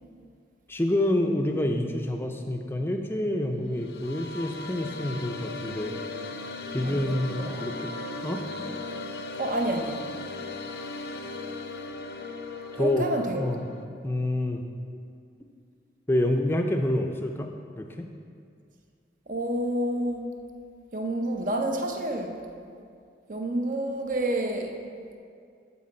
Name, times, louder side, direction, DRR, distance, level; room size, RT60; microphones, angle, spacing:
voice 1, 0.7-5.9 6.7-7.9 8.2-8.4 12.8-13.1 13.4-13.7 14.0-14.6 16.1-17.5 17.8-18.1, left 1 dB, 15° left, 3 dB, 0.4 m, -27 dB
sound 1, 3.6-13.8, left 3 dB, 70° left, 0.5 m, -37 dB
voice 2, 6.8-7.7 9.4-10.0 12.7-13.4 19.3-20.3 20.9-22.4 23.3-24.8, right 1 dB, 45° right, 3 dB, 0.6 m, -29 dB
11.5 x 4.4 x 4.3 m, 2.3 s
head